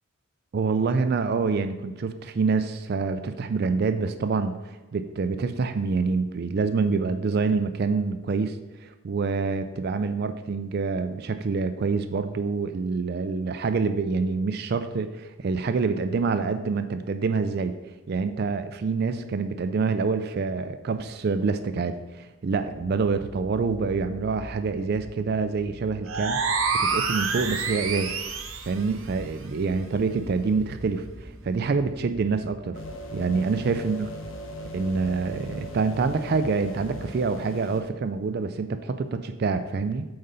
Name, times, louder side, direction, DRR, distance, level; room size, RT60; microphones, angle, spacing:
voice 1, 0.5-17.8 18.1-26.4 26.7-28.2 28.7-32.8 33.1-34.1 34.7-40.1, right 4 dB, 50° right, 10 dB, 0.3 m, -26 dB
sound 1, 22.5-37.8, right 1 dB, 30° right, 1.2 m, -45 dB
sound 2, 26.1-28.8, right 5 dB, 75° right, 0.9 m, -27 dB
sound 3, 32.7-37.8, left 1 dB, 65° left, 0.9 m, -39 dB
8.1 x 3.9 x 5.3 m, 1.2 s
head